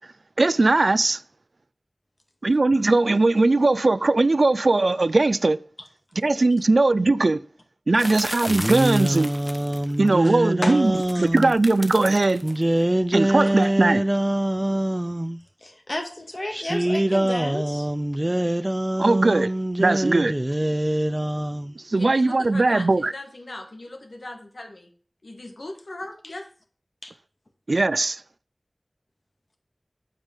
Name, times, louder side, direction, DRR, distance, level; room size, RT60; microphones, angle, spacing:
voice 1, 0.4-1.2 2.4-5.6 6.2-7.4 7.9-9.3 10.0-12.4 13.1-14.0 19.0-19.5 19.8-20.3 21.8-23.1 27.7-28.2, right 2 dB, 80° right, 0.4 m, -20 dB
sound 1, 8.0-10.1 10.9-12.6, equal, 5° left, 1.2 m, -34 dB
sound 2, 8.3-11.6 12.4-15.4 16.5-21.8, right 1 dB, 25° right, 0.6 m, -24 dB
voice 2, 9.9-10.4 10.6-11.3 15.6-17.9 26.2-26.3 27.0-27.1, left 1 dB, 45° left, 2.2 m, -33 dB
voice 3, 22.0-24.9 25.2-26.5, left 2 dB, 85° left, 1.9 m, -38 dB
9.0 x 5.3 x 7.2 m
wide cardioid pair, 50°, 0 cm